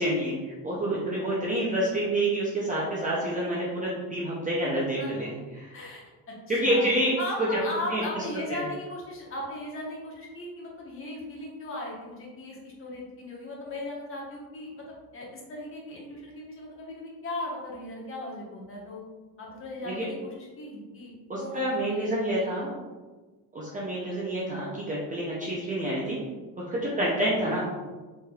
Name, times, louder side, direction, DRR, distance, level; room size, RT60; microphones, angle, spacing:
voice 1, 0.0-5.3 5.6-5.7 6.5-7.1 7.9-8.6 19.8-20.1 21.3-22.7 23.5-26.2 26.7-27.7, right 1 dB, 20° right, -6 dB, 0.5 m, -28 dB
voice 2, 5.0-5.3 5.7-6.9 7.2-14.8 15.1-19.0 19.4-21.1 21.4-21.6 21.9-22.6, left 1 dB, 30° left, -3 dB, 1.0 m, -37 dB
4.4 x 3.3 x 2.3 m, 1.3 s
cardioid pair, 135°, 46 cm